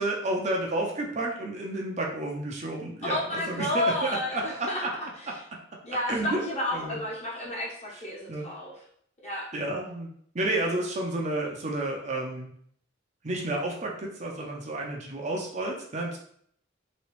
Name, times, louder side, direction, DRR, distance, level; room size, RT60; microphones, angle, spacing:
voice 1, 0.0-4.9 6.1-6.4 6.7-7.0 8.3-8.5 9.5-12.5 13.2-16.2, right 2 dB, 40° right, -1 dB, 0.6 m, -31 dB
voice 2, 3.1-4.8 5.8-8.7 9.2-9.5, left 1 dB, 35° left, -5 dB, 1.3 m, -31 dB
3.0 x 3.0 x 3.2 m, 0.63 s
head